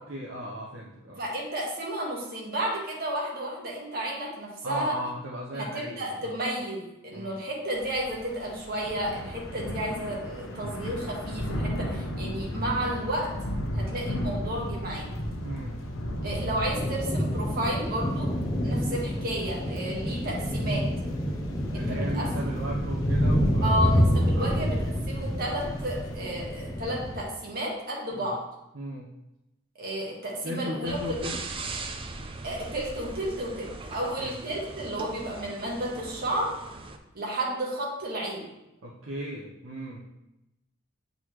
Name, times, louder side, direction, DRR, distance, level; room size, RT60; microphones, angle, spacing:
voice 1, 0.1-1.2 4.6-6.4 7.1-7.4 15.4-15.8 21.7-24.1 24.3-24.6 28.2-28.4 28.7-29.1 30.4-31.4 34.0-34.4 38.8-40.0, equal, 85° right, -5 dB, 0.8 m, -37 dB
voice 2, 1.2-4.9 5.5-13.3 13.7-15.1 16.2-18.3 18.6-20.8 21.7-22.6 23.6-28.4 29.8-31.0 32.4-36.5 37.1-38.5, right 1 dB, 45° right, -3 dB, 1.5 m, -32 dB
Thunder / Rain, 7.7-26.1, equal, 85° left, 0.8 m, -36 dB
sound 1, 16.8-27.2, equal, 20° left, 0.6 m, -27 dB
sound 2, 30.8-37.0, right 3 dB, 25° right, 0.4 m, -39 dB
7.9 x 4.0 x 3.1 m, 0.93 s
head